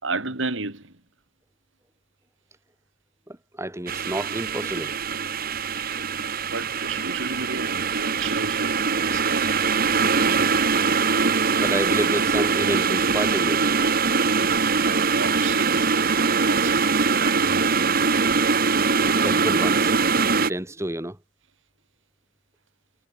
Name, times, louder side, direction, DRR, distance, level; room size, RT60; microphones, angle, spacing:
voice 1, 0.0-1.0 5.7-6.0 6.5-9.8 14.3-16.0 16.3-16.8 17.2-17.8, right 3 dB, 75° right, 3.8 m, -33 dB
voice 2, 3.3-4.9 11.6-13.7 19.2-19.9 20.5-21.2, right 1 dB, 15° right, 2.0 m, -29 dB
sound 1, 3.9-20.5, right 5 dB, 50° right, 1.7 m, -22 dB
head